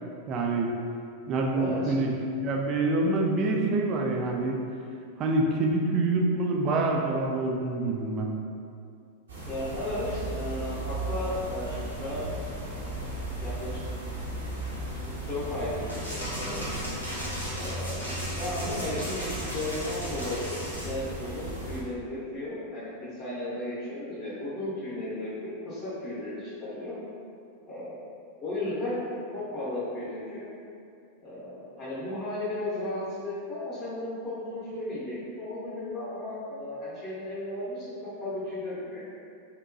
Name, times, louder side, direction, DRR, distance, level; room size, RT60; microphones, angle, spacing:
voice 1, 0.3-0.7 1.3-4.6 5.2-8.3, right 2 dB, 35° right, 0 dB, 0.3 m, -26 dB
voice 2, 1.5-1.9 9.5-12.3 12.7-13.1 13.4-13.8 15.3-16.8 17.5-22.9 23.2-27.0 27.7-28.0 28.4-29.0 29.3-30.5 31.2-39.1, left 1 dB, 30° left, -10 dB, 0.7 m, -35 dB
sound 1, 9.3-21.8, right 1 dB, 70° right, 0.6 m, -36 dB
sound 2, 15.9-20.9, equal, 85° left, 0.6 m, -36 dB
2.7 x 2.1 x 2.5 m, 2.4 s
figure-of-eight pair, 90°, 0 cm